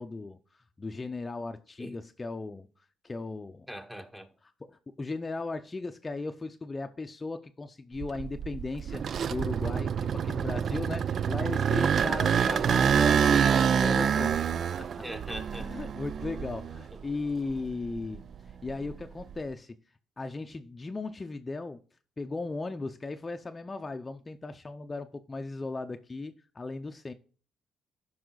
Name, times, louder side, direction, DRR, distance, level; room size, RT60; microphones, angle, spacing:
voice 1, 0.0-3.7 4.4-14.3 14.8-14.9 15.6-18.2 18.6-19.7 20.2-21.8 22.2-27.1, left 3 dB, 25° left, 0.6 m, -37 dB
voice 2, 3.7-4.3 12.4-12.6 15.0-15.9, equal, 10° right, 1.2 m, -41 dB
sound 1, 8.0-17.0 17.5-19.3, right 7 dB, 55° right, 0.3 m, -27 dB
12.5 x 5.6 x 3.9 m
cardioid pair, 90°, 0 cm